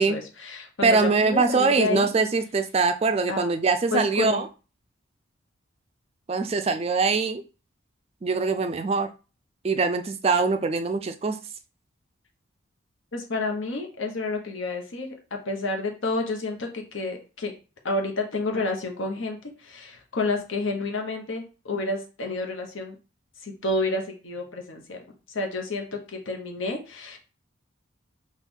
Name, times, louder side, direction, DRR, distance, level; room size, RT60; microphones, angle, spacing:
voice 1, 0.0-2.1 3.3-3.5 3.9-4.4 13.1-15.1 15.4-17.5 17.8-22.9 23.4-27.2, left 2 dB, 75° left, 2 dB, 1.0 m, -30 dB
voice 2, 0.8-4.5 6.3-7.4 8.2-9.1 9.6-11.4, right 4 dB, 30° right, 8 dB, 0.3 m, -23 dB
4.4 x 2.4 x 3.6 m, 0.33 s
head